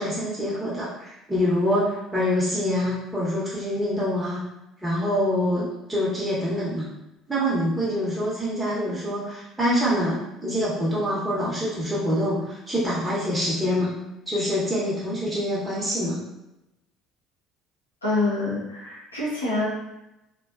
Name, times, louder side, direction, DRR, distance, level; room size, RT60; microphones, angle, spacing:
voice 1, 0.0-4.4 4.8-6.9 7.3-14.0 14.3-16.2, equal, 10° right, -8 dB, 0.8 m, -25 dB
voice 2, 18.0-19.7, left 2 dB, 85° left, -8 dB, 0.6 m, -26 dB
2.5 x 2.1 x 2.3 m, 0.92 s
figure-of-eight pair, 55°, 0 cm